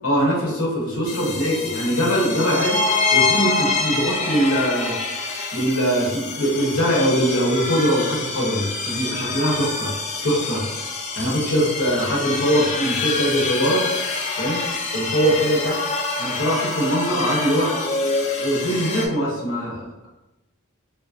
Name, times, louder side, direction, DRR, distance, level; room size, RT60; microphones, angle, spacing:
voice 1, 0.0-2.8 3.1-4.9 5.5-9.9 10.2-10.6 11.2-13.8 14.4-14.6 14.9-15.8 16.2-17.7 18.2-20.1, equal, 75° left, -4 dB, 0.9 m, -22 dB
sound 1, 1.1-19.1, left 3 dB, 35° left, 0.4 m, -26 dB
3.1 x 2.2 x 2.4 m, 1.0 s
head